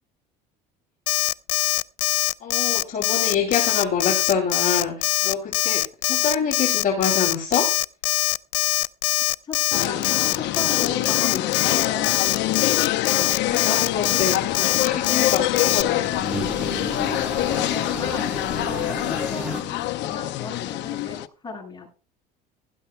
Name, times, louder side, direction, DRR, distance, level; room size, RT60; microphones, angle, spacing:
Alarm, 1.1-15.8, left 23 dB, 90° left, 0.4 m, -22 dB
voice 1, 2.4-7.7 13.1-14.5 14.8-16.1, left 6 dB, 40° left, 0 dB, 2.7 m, -26 dB
voice 2, 9.4-12.1 17.6-18.3 18.6-21.9, left 4 dB, 20° left, -2 dB, 6.1 m, -35 dB
sound 1, 9.7-21.3, left 15 dB, 60° left, 0.7 m, -25 dB
sound 2, 13.2-13.5 14.0-15.3 15.7-19.6, right 1 dB, 5° right, 2.0 m, -33 dB
16.0 x 12.5 x 2.2 m, 0.34 s
supercardioid pair, 100°, 20 cm